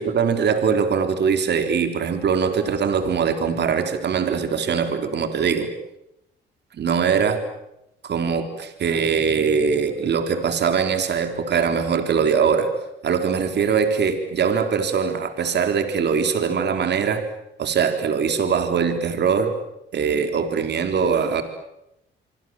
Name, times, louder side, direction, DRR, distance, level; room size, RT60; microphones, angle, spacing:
voice 1, 0.0-5.7 6.7-7.4 8.0-12.7 13.0-17.3 17.6-19.6 19.9-21.4, right 6 dB, 60° right, 7 dB, 3.8 m, -22 dB
26.5 x 25.0 x 7.7 m, 0.86 s
cardioid pair, 90°, 20 cm